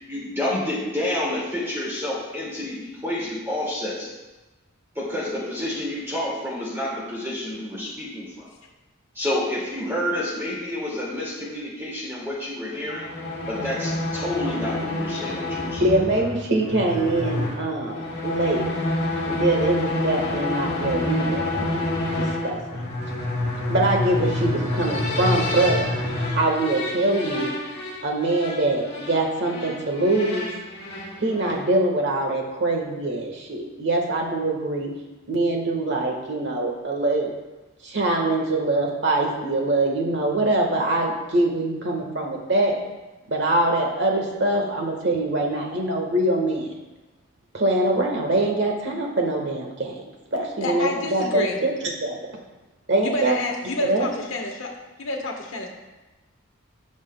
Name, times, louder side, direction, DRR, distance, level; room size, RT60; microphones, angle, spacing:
voice 1, 0.1-4.1 4.9-8.5 9.1-13.1 13.5-15.9, left 1 dB, 10° right, -6 dB, 2.0 m, -29 dB
sound 1, 12.7-31.8, left 2 dB, 50° left, 2.0 m, -28 dB
voice 2, 15.8-18.7 19.3-21.9 22.2-22.9 23.7-25.9 26.3-27.5 28.0-30.5 31.2-34.9 35.3-37.3 37.8-42.7 43.3-46.7 47.5-50.0 50.3-51.7 52.0-52.3 52.9-53.3 53.8-54.1, right 2 dB, 55° right, 1 dB, 1.4 m, -23 dB
voice 3, 50.6-51.6 53.0-54.7 55.0-55.7, left 2 dB, 75° left, 1 dB, 1.3 m, -28 dB
15.0 x 6.2 x 2.2 m, 1.1 s
head